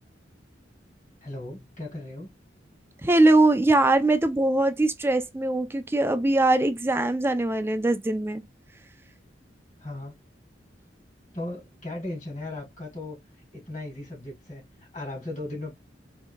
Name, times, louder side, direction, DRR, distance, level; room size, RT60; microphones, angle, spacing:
voice 1, 1.2-2.3 9.8-10.2 11.3-13.2 13.5-15.7, left 2 dB, 40° left, 2.4 m, -37 dB
voice 2, 3.0-8.4, right 2 dB, 15° right, 0.4 m, -21 dB
4.5 x 2.7 x 2.2 m
head